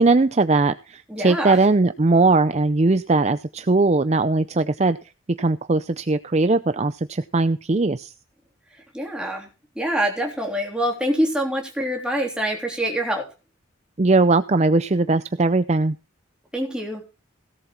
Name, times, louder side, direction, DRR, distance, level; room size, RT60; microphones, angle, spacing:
voice 1, 0.0-5.0 5.4-8.1 14.0-16.0, right 3 dB, 35° right, 12 dB, 0.5 m, -19 dB
voice 2, 1.1-1.6 8.9-9.5 9.8-13.3 16.5-17.0, equal, 5° right, 0 dB, 3.4 m, -25 dB
17.0 x 7.6 x 4.4 m, 0.33 s
head